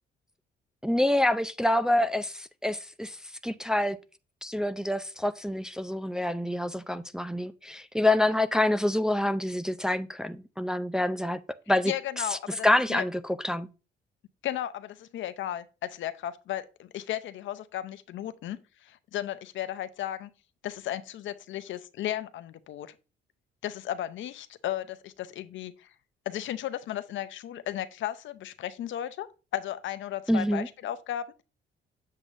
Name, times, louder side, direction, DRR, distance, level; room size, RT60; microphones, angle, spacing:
voice 1, 0.8-3.2 3.4-4.0 4.4-11.4 11.7-11.9 12.6-13.7 30.3-30.7, left 1 dB, 5° right, 0.4 m, -26 dB
voice 2, 11.9-13.0 14.4-20.3 20.6-22.9 23.6-25.9 26.3-29.3 29.5-31.4, left 12 dB, 70° left, 0.6 m, -35 dB
8.1 x 7.5 x 2.5 m
cardioid pair, 90°, 20 cm